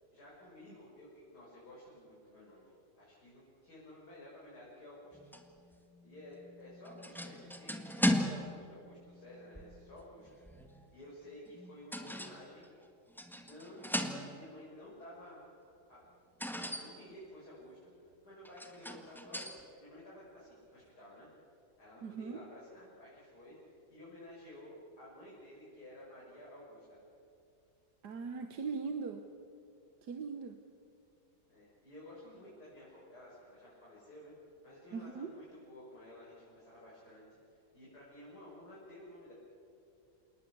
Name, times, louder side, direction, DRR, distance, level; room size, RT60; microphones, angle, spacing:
voice 1, 0.1-5.3 6.0-10.4 10.9-12.7 13.3-15.5 15.9-16.0 16.4-27.0 31.5-34.3 34.6-37.2 37.5-39.3, left 1 dB, 65° left, -7 dB, 6.6 m, -53 dB
sound 1, 5.1-10.9 11.5-12.8 13.2-14.6 16.4-17.0 18.4-19.6, equal, ahead, 1.6 m, -38 dB
voice 2, 22.0-22.4 28.0-29.3 30.0-30.6 34.9-35.3, right 5 dB, 70° right, 6 dB, 1.7 m, -40 dB
28.0 x 19.5 x 8.1 m, 2.6 s
omnidirectional pair, 1.8 m